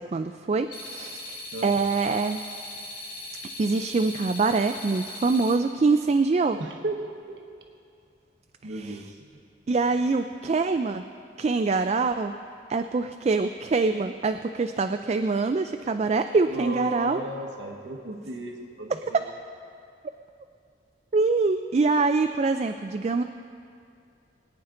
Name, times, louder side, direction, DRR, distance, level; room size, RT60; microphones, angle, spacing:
voice 1, 0.0-2.4 3.6-6.6 8.8-9.0 9.7-11.0 11.4-12.3 12.7-17.2 21.1-23.2, right 4 dB, 35° right, 8 dB, 0.3 m, -24 dB
sound 1, 0.7-5.5, left 1 dB, 45° left, 2.7 m, -39 dB
voice 2, 6.6-7.4 8.6-9.2 16.5-19.3, right 1 dB, 70° right, 2 dB, 1.2 m, -35 dB
22.0 x 9.5 x 3.8 m, 2.4 s
head